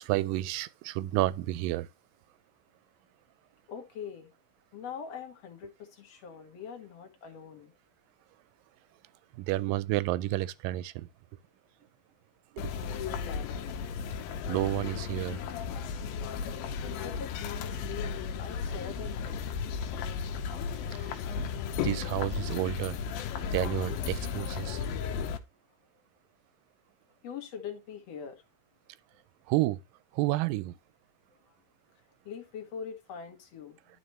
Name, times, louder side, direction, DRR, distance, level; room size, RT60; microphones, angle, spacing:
voice 1, 0.0-1.9 9.4-11.1 12.6-12.7 14.5-15.4 20.9-23.0 23.5-24.8 29.5-29.8 30.1-30.7, right 17 dB, 85° right, 2.2 m, -31 dB
voice 2, 3.7-4.3 4.7-7.7 12.6-13.8 17.0-19.4 27.2-28.4 31.5-31.6 32.2-33.8, left 7 dB, 55° left, 2.4 m, -43 dB
sound 1, 12.6-25.4, left 6 dB, 85° left, 2.7 m, -35 dB
12.0 x 4.9 x 3.1 m
omnidirectional pair, 4.0 m